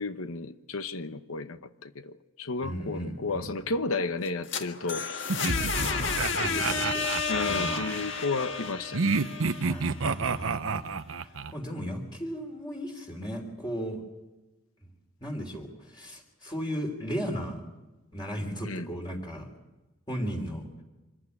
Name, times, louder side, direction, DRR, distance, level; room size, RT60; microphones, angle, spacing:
voice 1, 0.0-5.1 7.3-9.2 18.6-18.9, left 3 dB, 85° left, 1.0 m, -33 dB
voice 2, 2.6-3.5 5.7-7.1 7.4-7.9 9.6-14.0 15.2-17.6 18.1-19.5 20.1-20.7, equal, 20° left, 3.2 m, -36 dB
sound 1, 4.2-10.1, left 4 dB, 60° left, 1.8 m, -31 dB
sound 2, 5.3-8.0 8.9-11.5, right 4 dB, 80° right, 0.8 m, -30 dB
25.5 x 15.0 x 9.9 m
head